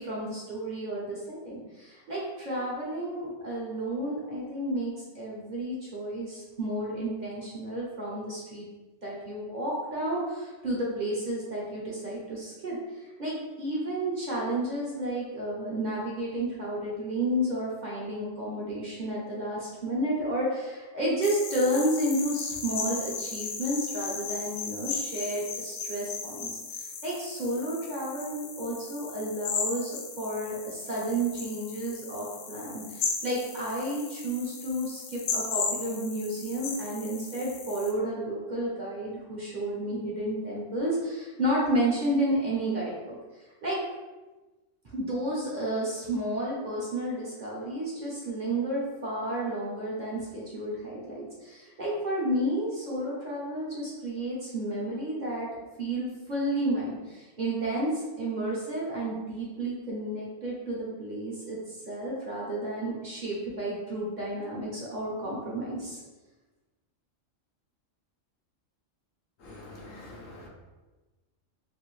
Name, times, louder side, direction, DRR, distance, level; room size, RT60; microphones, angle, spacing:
voice 1, 0.0-8.7 9.0-12.8 13.2-43.2 43.6-43.8 44.8-55.5 55.8-66.0, right 1 dB, 40° right, -5 dB, 0.8 m, -31 dB
sound 1, 21.2-37.9, left 5 dB, 70° left, 0.8 m, -36 dB
voice 2, 69.4-70.5, left 1 dB, 85° left, -2 dB, 1.2 m, -45 dB
3.3 x 2.6 x 3.1 m, 1.2 s
omnidirectional pair, 1.3 m